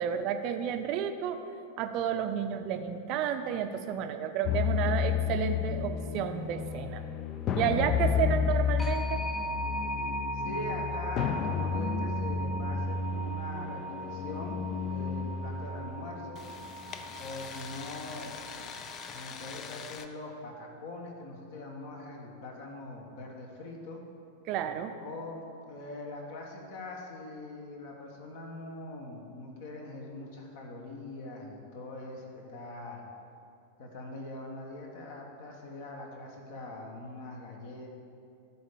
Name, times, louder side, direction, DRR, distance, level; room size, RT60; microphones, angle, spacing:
voice 1, 0.0-1.4 1.8-7.0 7.5-9.2 24.5-24.9, right 8 dB, 40° right, 8 dB, 0.6 m, -31 dB
sound 1, 4.4-20.0, left 6 dB, 30° left, 0.5 m, -33 dB
sound 2, 8.8-19.4, right 2 dB, 10° left, 0.8 m, -39 dB
voice 2, 10.3-16.4 17.2-18.4 19.1-24.0 25.0-33.0 33.8-37.9, left 2 dB, 50° left, 1 dB, 1.5 m, -42 dB
11.0 x 4.3 x 6.9 m, 2.5 s
figure-of-eight pair, 90°, 0 cm